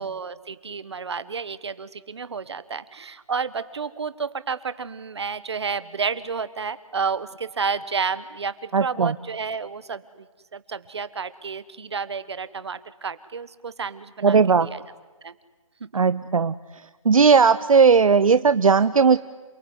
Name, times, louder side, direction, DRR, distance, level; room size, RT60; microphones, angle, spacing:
voice 1, 0.0-10.3 10.5-14.8 15.2-15.3 15.8-16.0, right 5 dB, 50° right, 15 dB, 1.3 m, -31 dB
voice 2, 8.7-9.1 14.2-14.7 15.9-16.5 17.0-19.2, right 5 dB, 70° right, 13 dB, 0.8 m, -17 dB
28.0 x 19.0 x 9.6 m, 1.3 s
hypercardioid pair, 170°, 18 cm